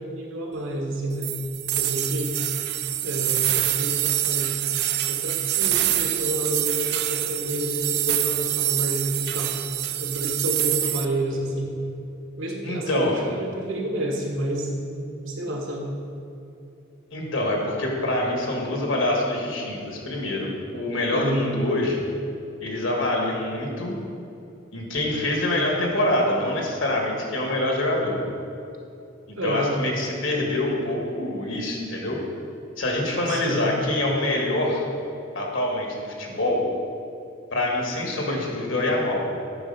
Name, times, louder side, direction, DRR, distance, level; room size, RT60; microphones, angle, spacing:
voice 1, 0.0-1.4 1.7-2.4 3.0-4.6 5.1-9.6 10.0-11.7 12.4-15.9 21.1-21.5 29.4-29.8 33.3-33.6, right 1 dB, 80° right, 0 dB, 1.3 m, -29 dB
sound 1, 1.2-11.0, right 13 dB, 55° right, 0.3 m, -25 dB
voice 2, 12.6-13.1 17.1-22.0 22.6-23.9 24.7-28.2 29.3-32.2 32.8-34.9 35.3-36.6 37.5-39.2, left 1 dB, 75° left, -1 dB, 1.6 m, -25 dB
9.8 x 4.3 x 5.5 m, 2.7 s
head